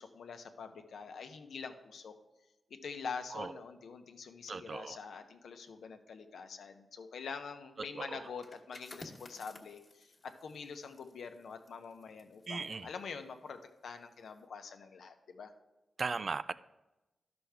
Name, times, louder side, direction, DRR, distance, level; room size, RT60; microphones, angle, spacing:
voice 1, 0.0-2.1 2.8-15.5, left 5 dB, 80° left, 6 dB, 0.8 m, -45 dB
voice 2, 4.5-5.0 7.9-8.2 12.5-12.9 16.0-16.5, right 4 dB, 45° right, 15 dB, 0.3 m, -37 dB
sound 1, 8.3-13.8 14.1-14.4, left 2 dB, 35° left, 1.3 m, -55 dB
11.5 x 6.1 x 3.4 m, 1.0 s
wide cardioid pair, 95°, 0 cm